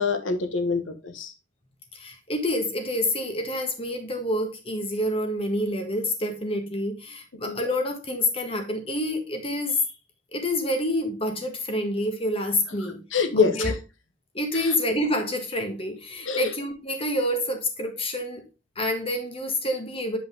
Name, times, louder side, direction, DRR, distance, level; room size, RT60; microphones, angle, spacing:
voice 1, 0.0-1.3 7.4-7.6 13.1-13.7 16.3-16.5, left 5 dB, 80° left, 1.1 m, -25 dB
voice 2, 1.9-9.8 10.3-13.0 13.4-13.7 14.3-18.4 18.8-20.2, left 1 dB, 30° left, 1.5 m, -28 dB
8.1 x 5.1 x 3.5 m
head